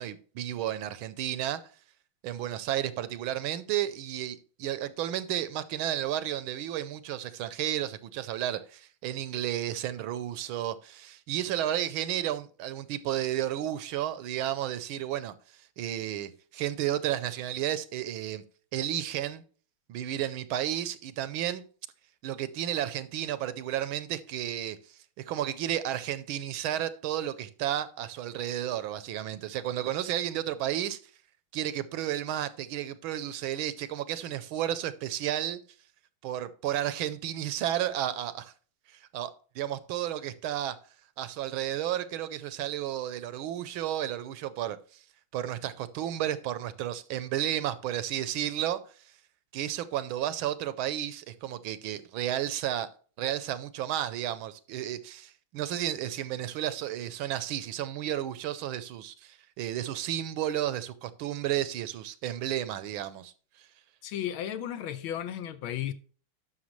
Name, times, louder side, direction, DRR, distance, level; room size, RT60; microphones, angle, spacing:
voice 1, 0.0-1.6 2.2-18.4 18.7-19.4 19.9-21.6 22.2-31.0 31.5-35.6 36.2-38.5 38.9-40.8 41.2-45.0 45.3-48.8 49.5-52.9 53.2-63.3 63.6-63.7, right 12 dB, 75° right, 1.4 m, -32 dB
voice 2, 64.0-65.9, left 10 dB, 75° left, 1.4 m, -34 dB
11.5 x 6.3 x 3.1 m
omnidirectional pair, 2.4 m